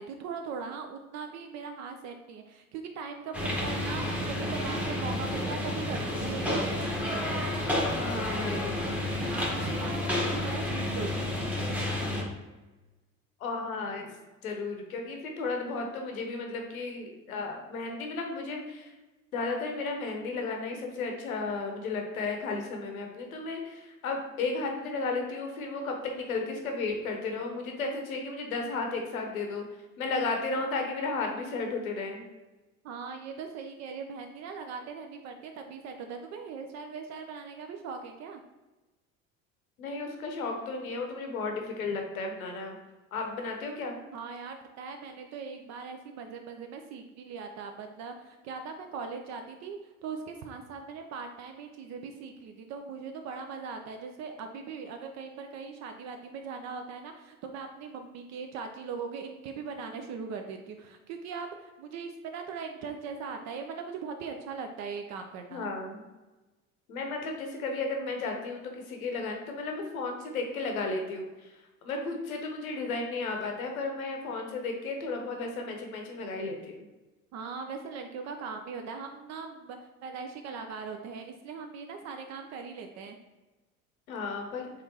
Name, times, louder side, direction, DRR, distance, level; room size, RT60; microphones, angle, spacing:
voice 1, 0.0-6.7 9.2-11.3 32.8-38.4 44.1-65.7 77.3-83.2, right 5 dB, 45° right, 5 dB, 0.4 m, -40 dB
sound 1, 3.3-12.2, left 1 dB, 5° right, 1.0 m, -30 dB
voice 2, 7.9-8.8 13.4-14.1 14.4-18.9 19.3-29.6 30.0-32.2 39.8-42.8 43.1-44.0 65.5-66.0 66.9-76.9 84.1-84.7, left 3 dB, 85° left, 3 dB, 0.8 m, -34 dB
3.5 x 3.5 x 2.8 m, 1.1 s
hypercardioid pair, 65°, 41 cm